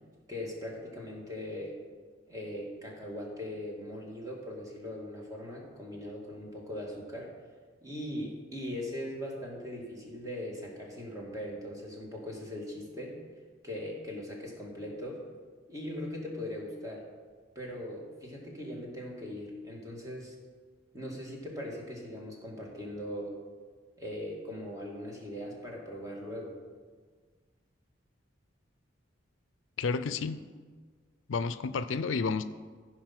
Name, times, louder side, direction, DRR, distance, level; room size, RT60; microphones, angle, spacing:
voice 1, 0.3-1.8 2.3-7.3 7.8-13.2 13.6-15.2 15.7-17.0 17.6-20.3 20.9-23.4 24.0-26.6, left 1 dB, 20° right, -2 dB, 2.2 m, -40 dB
voice 2, 29.8-30.4 31.3-32.4, left 4 dB, 85° left, 13 dB, 0.5 m, -31 dB
15.0 x 5.1 x 6.0 m, 1.5 s
head